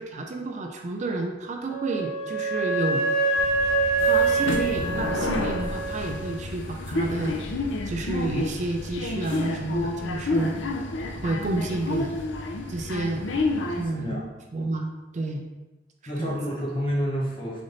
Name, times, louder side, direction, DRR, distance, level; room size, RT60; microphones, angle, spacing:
voice 1, 0.0-3.0 4.0-7.4 7.9-10.5 11.2-12.1 12.7-13.2 13.8-14.2 14.5-15.4 16.2-16.4, right 2 dB, 40° right, 2 dB, 0.4 m, -30 dB
Wind instrument woodwind instrument, 1.7-6.3, right 3 dB, 15° right, 1.2 m, -25 dB
sound 1, 3.4-13.9, left 2 dB, 75° left, 0.5 m, -30 dB
voice 2, 13.8-14.3 16.1-17.6, equal, 30° left, -4 dB, 1.1 m, -29 dB
3.8 x 3.4 x 3.9 m, 1.1 s
head